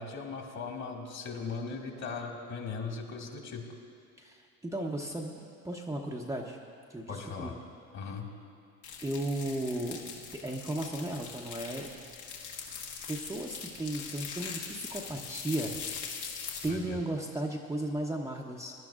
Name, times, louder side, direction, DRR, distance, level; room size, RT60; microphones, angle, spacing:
voice 1, 0.0-3.6 7.1-7.6 7.9-8.3 16.7-17.0, left 4 dB, 40° left, 1 dB, 2.0 m, -38 dB
voice 2, 4.2-5.3 5.6-6.6 6.9-7.5 9.0-11.9 13.1-15.8 16.6-18.7, right 1 dB, 5° right, -1 dB, 0.7 m, -35 dB
sound 1, 8.8-16.7, left 6 dB, 65° left, 1.8 m, -42 dB
21.0 x 11.0 x 2.4 m, 2.4 s
hypercardioid pair, 85°, 42 cm